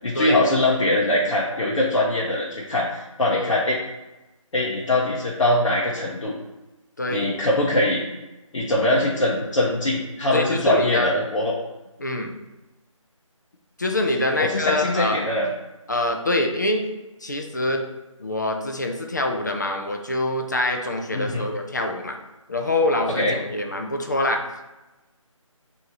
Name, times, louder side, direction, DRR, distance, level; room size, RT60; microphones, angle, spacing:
voice 1, 0.0-3.8 4.5-6.3 7.1-8.0 8.5-11.5 14.4-15.5 21.1-21.4 23.2-23.3, left 1 dB, 65° left, -4 dB, 0.8 m, -22 dB
voice 2, 7.0-7.3 10.3-11.1 12.0-12.4 13.8-15.2 15.9-16.8 17.2-17.8 18.2-22.2 22.5-24.4, left 1 dB, 35° left, 3 dB, 0.4 m, -25 dB
5.8 x 2.7 x 2.7 m, 1.0 s
figure-of-eight pair, 165°, 17 cm